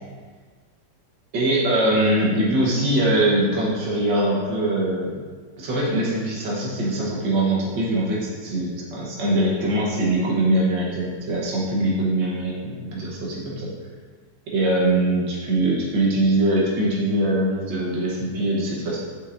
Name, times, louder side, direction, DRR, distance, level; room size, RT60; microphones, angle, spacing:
voice 1, 1.3-5.2 5.6-13.7 14.5-19.0, right 1 dB, 85° right, -4 dB, 1.9 m, -22 dB
6.4 x 5.9 x 2.5 m, 1.5 s
omnidirectional pair, 1.9 m